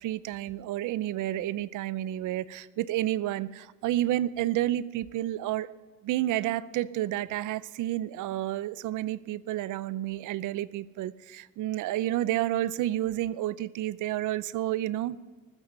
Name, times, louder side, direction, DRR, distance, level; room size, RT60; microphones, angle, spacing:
voice 1, 0.0-5.7 6.0-15.2, right 14 dB, 80° right, 18 dB, 0.6 m, -30 dB
14.5 x 13.5 x 5.4 m, 1.4 s
cardioid pair, 90°, 30 cm